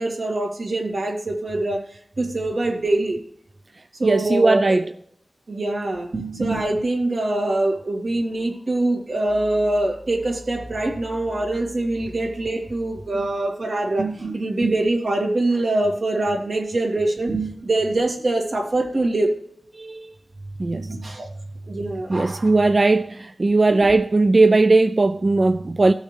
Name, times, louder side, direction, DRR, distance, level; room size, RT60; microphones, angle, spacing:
voice 1, 0.0-3.2 4.0-4.8 5.5-19.3 20.7-21.3 21.7-22.5, right 2 dB, 80° right, 2.2 m, -24 dB
voice 2, 4.0-4.8 19.7-20.1 20.6-21.0 22.1-25.9, right 3 dB, 45° right, 0.3 m, -18 dB
16.0 x 6.3 x 3.3 m
wide cardioid pair, 80°, 0 cm